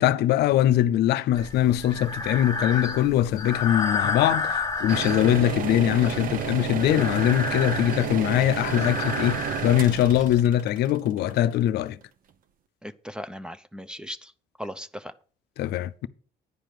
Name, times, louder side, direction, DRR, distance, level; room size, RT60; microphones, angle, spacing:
voice 1, 0.0-12.0 15.6-16.1, left 12 dB, 75° left, 0.6 m, -22 dB
Breathing, 1.4-10.4, left 3 dB, 20° left, 1.6 m, -31 dB
sound 1, 4.9-11.8, right 9 dB, 55° right, 0.8 m, -32 dB
voice 2, 12.8-14.3 14.6-15.1, equal, 5° right, 0.6 m, -37 dB
9.9 x 5.0 x 7.6 m
cardioid pair, 110°, 17 cm